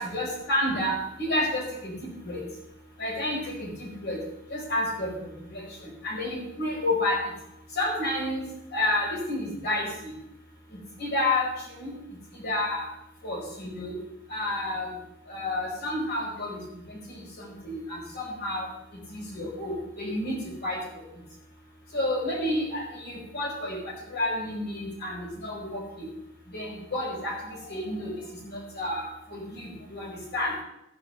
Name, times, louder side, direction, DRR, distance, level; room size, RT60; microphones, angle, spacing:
voice 1, 0.0-2.4 3.0-4.2 4.5-7.2 7.7-8.5 8.7-10.1 10.7-11.9 12.3-12.8 13.2-13.9 14.3-14.9 15.3-16.6 16.9-18.7 19.1-21.0 21.9-26.1 26.5-28.1 28.4-30.5, left 1 dB, 55° left, -1 dB, 4.5 m, -30 dB
14.0 x 5.2 x 6.9 m, 0.83 s
head